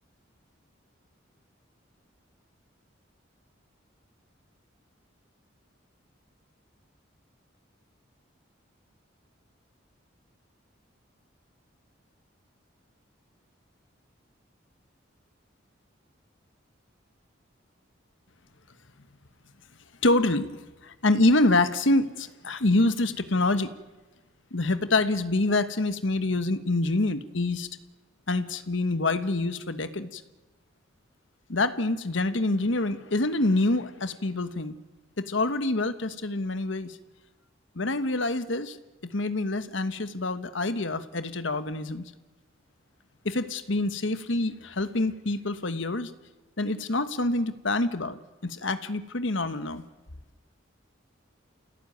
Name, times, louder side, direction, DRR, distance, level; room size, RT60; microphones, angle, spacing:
voice 1, 20.0-20.5 20.8-23.7 24.5-27.7 28.3-30.2 31.5-34.8 35.2-37.0 37.7-38.8 39.1-42.0 43.2-46.1 46.6-49.8, left 2 dB, 75° left, 11 dB, 1.3 m, -26 dB
28.0 x 17.5 x 9.3 m, 1.2 s
head